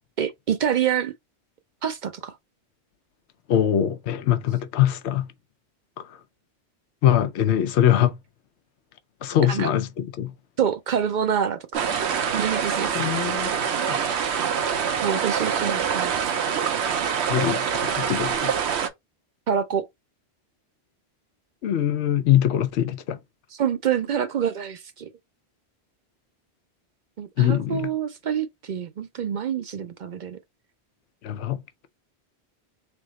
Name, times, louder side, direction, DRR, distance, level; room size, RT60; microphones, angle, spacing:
voice 1, 0.2-1.1 1.8-2.3 9.5-9.7 10.6-11.7 12.3-13.0 15.0-16.1 19.5-19.8 23.6-25.1 27.2-30.4, right 8 dB, 55° right, 0.5 m, -26 dB
voice 2, 3.5-5.3 6.0-6.2 7.0-8.1 9.2-10.3 12.9-13.6 13.9-14.0 17.3-18.5 21.6-23.2 27.4-27.9 31.2-31.6, left 11 dB, 85° left, 0.9 m, -22 dB
sound 1, 11.7-18.9, right 7 dB, 80° right, 1.0 m, -25 dB
3.7 x 3.4 x 3.1 m
omnidirectional pair, 1.1 m